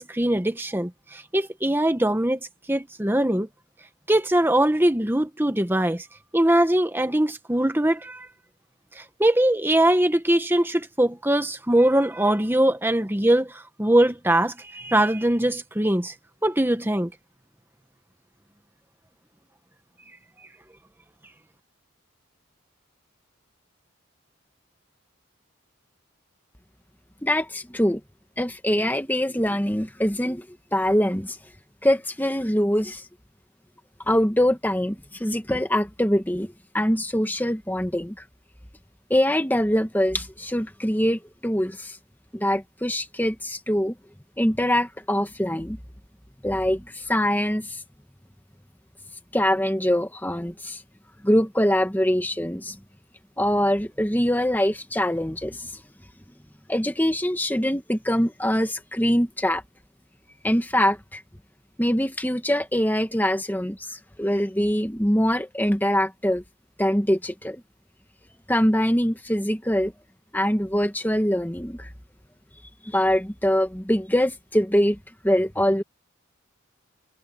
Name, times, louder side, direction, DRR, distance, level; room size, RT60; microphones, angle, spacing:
voice 1, 0.0-2.4 2.7-3.5 4.1-6.1 6.3-8.3 8.9-16.1 16.4-17.1, right 1 dB, 10° right, 1.0 m, -22 dB
voice 2, 27.2-28.0 28.4-30.4 30.7-31.4 31.8-33.0 34.1-38.1 39.1-42.0 42.3-43.9 44.4-45.8 46.4-47.8 49.3-50.8 51.2-52.8 53.4-55.7 56.7-59.6 60.4-61.2 61.8-66.4 66.8-67.6 68.5-69.9 70.3-71.9 72.8-75.0 75.2-75.8, equal, 10° left, 1.6 m, -23 dB
head